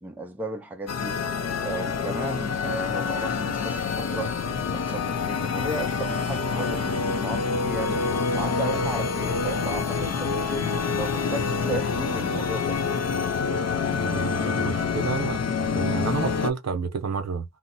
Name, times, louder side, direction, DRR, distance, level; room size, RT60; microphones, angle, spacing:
voice 1, 0.0-1.2 1.6-4.3 4.7-8.0 8.3-10.7 11.0-12.8, right 2 dB, 5° right, 0.5 m, -34 dB
sound 1, 0.9-16.5, left 5 dB, 55° left, 0.5 m, -27 dB
voice 2, 13.9-17.4, right 5 dB, 60° right, 0.8 m, -30 dB
2.7 x 2.1 x 4.0 m
wide cardioid pair, 120°, 30 cm